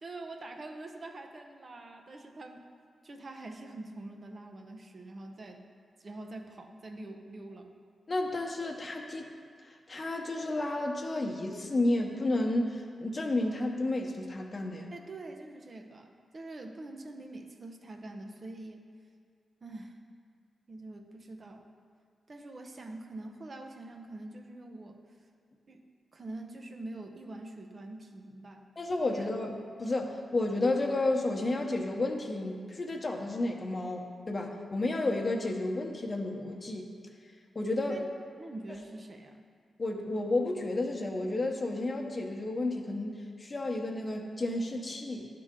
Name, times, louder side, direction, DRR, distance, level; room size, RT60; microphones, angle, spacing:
voice 1, 0.0-2.7 3.0-5.6 6.0-7.7 14.9-18.9 19.6-20.0 20.7-21.6 22.3-25.0 25.7-25.8 26.1-28.7 29.1-29.3 37.9-38.1 38.4-39.4, right 2 dB, 50° right, 4 dB, 0.7 m, -45 dB
voice 2, 8.1-9.3 9.6-14.9 28.8-29.5 29.8-36.9 37.5-38.0 39.8-45.3, left 2 dB, 40° left, 1 dB, 0.9 m, -31 dB
11.0 x 3.8 x 3.7 m, 2.1 s
cardioid pair, 50°, 0 cm